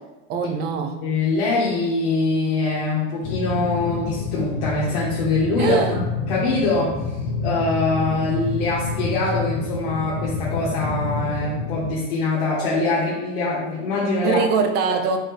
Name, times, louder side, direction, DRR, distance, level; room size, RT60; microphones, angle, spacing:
voice 1, 0.3-0.9 5.6-6.0 14.2-15.2, right 5 dB, 35° right, 5 dB, 0.5 m, -22 dB
voice 2, 1.0-7.0 7.4-14.4, left 3 dB, 85° left, -7 dB, 1.3 m, -23 dB
sound 1, 3.2-11.9, left 4 dB, 45° left, 0.6 m, -28 dB
4.3 x 3.5 x 3.4 m, 1.0 s
supercardioid pair, 160°, 30 cm